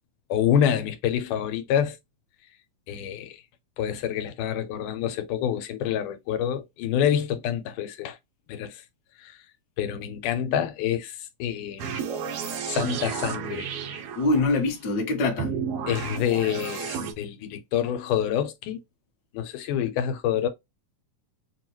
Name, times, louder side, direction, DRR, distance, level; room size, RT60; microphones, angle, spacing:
voice 1, 0.3-2.0 2.9-3.4 3.8-8.2 8.5-8.8 9.2-9.4 9.8-12.2 12.7-13.7 15.9-18.8 19.3-20.5, left 9 dB, 85° left, 2.2 m, -27 dB
sound 1, 11.8-14.6 15.4-17.1, right 7 dB, 85° right, 1.3 m, -32 dB
voice 2, 14.1-15.5, left 2 dB, 50° left, 1.2 m, -24 dB
6.7 x 2.3 x 3.0 m
omnidirectional pair, 3.7 m